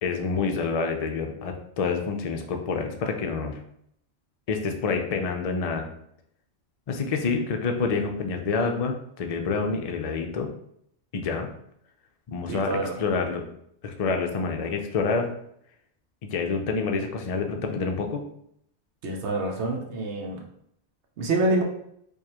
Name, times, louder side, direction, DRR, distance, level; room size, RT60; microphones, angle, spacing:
voice 1, 0.0-3.6 4.5-5.9 6.9-10.5 11.1-11.5 12.3-13.5 13.8-15.3 16.2-18.2, left 4 dB, 50° left, 4 dB, 0.5 m, -27 dB
voice 2, 12.5-13.0 19.0-20.4 21.2-21.6, right 2 dB, 80° right, 1 dB, 1.0 m, -26 dB
4.8 x 2.4 x 2.9 m, 0.71 s
omnidirectional pair, 1.2 m